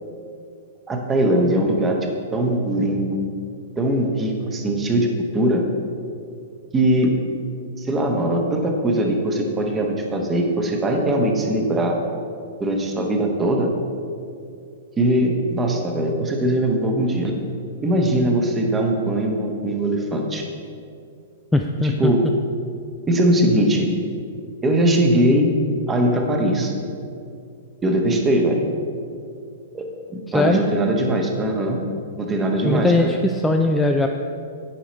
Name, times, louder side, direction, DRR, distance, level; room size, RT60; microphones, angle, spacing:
voice 1, 0.9-2.0 2.3-3.2 3.8-5.1 5.3-5.6 6.7-7.1 7.8-12.0 12.6-13.7 15.0-17.3 17.8-20.4 21.8-22.2 23.1-23.9 24.6-25.5 25.9-26.7 27.8-28.7 29.7-29.9 30.1-31.8 32.2-33.1, right 1 dB, 20° right, 2 dB, 1.0 m, -20 dB
voice 2, 21.5-22.1 30.3-30.6 32.6-34.1, left 2 dB, 5° left, 3 dB, 0.3 m, -19 dB
8.4 x 4.9 x 4.2 m, 2.4 s
hypercardioid pair, 110°, 0 cm